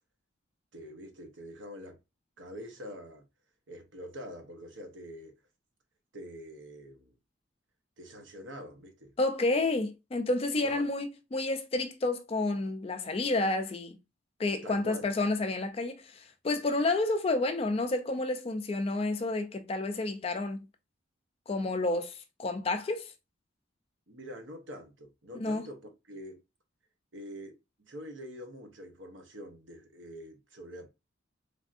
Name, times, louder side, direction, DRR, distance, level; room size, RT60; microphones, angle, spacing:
voice 1, 0.7-2.0 2.4-3.2 3.7-5.3 6.1-7.1 8.0-9.1 10.6-10.9 14.6-15.1 24.1-25.8 26.1-26.4 27.1-27.6 27.8-30.9, equal, 65° right, 0.8 m, -45 dB
voice 2, 9.2-14.0 14.4-20.7 21.5-23.1 25.3-25.7, left 2 dB, 30° left, 0.3 m, -30 dB
3.3 x 2.5 x 2.4 m
head